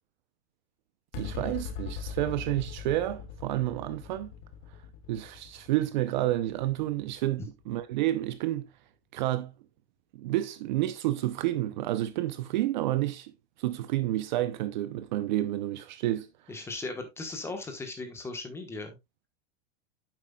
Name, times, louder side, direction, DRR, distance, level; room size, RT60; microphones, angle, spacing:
sound 1, 1.1-7.8, left 7 dB, 30° left, 0.8 m, -41 dB
voice 1, 1.2-4.3 5.1-8.7 9.1-9.5 10.1-13.3 13.6-16.3, right 15 dB, 45° right, 0.6 m, -30 dB
voice 2, 16.5-19.0, left 3 dB, 10° left, 1.1 m, -37 dB
9.4 x 7.5 x 2.3 m
supercardioid pair, 170°, 33 cm